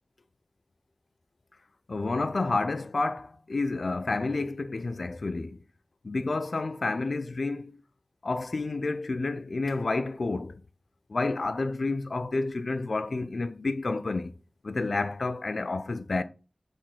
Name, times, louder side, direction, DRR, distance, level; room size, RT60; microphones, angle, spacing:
voice 1, 1.9-5.6 6.0-7.8 8.2-10.6 11.1-14.3 14.6-16.2, left 3 dB, 75° left, 0.4 m, -30 dB
4.3 x 3.1 x 3.7 m
wide cardioid pair, 50°, 0 cm